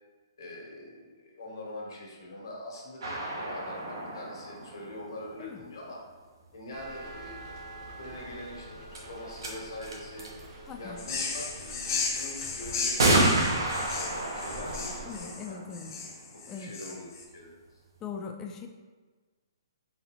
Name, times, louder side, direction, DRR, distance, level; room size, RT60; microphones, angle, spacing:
voice 1, 0.4-6.0 6.5-7.5 7.9-10.3 10.8-15.6 16.5-17.1 17.3-17.8, left 1 dB, 75° left, -2 dB, 1.3 m, -43 dB
sound 1, 3.0-5.7 8.3-8.4 8.9-9.0 9.4-9.5 9.8-10.4 11.7-11.8 13.0-16.5, right 2 dB, 75° right, 1.0 m, -30 dB
sound 2, 6.7-15.2, right 1 dB, 30° right, 0.8 m, -45 dB
voice 2, 10.7-11.0 15.0-15.9 16.5-16.7 18.0-18.7, left 6 dB, 20° left, 4 dB, 0.4 m, -40 dB
sound 3, 11.0-17.2, left 4 dB, 50° left, 0.8 m, -35 dB
4.2 x 3.8 x 2.9 m, 1.4 s
hypercardioid pair, 140°, 2 cm